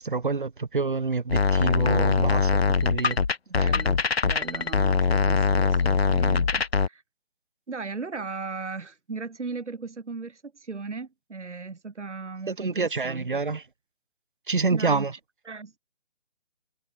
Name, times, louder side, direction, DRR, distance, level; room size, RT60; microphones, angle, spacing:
voice 1, 0.0-3.2 12.6-13.6 14.5-15.1, right 4 dB, 45° right, 0.8 m, -27 dB
sound 1, 1.3-6.9, left 5 dB, 60° left, 1.0 m, -22 dB
voice 2, 3.5-7.0 7.7-13.4 14.7-15.2 15.4-15.8, right 4 dB, 80° right, 2.1 m, -37 dB
figure-of-eight pair, 175°, 35 cm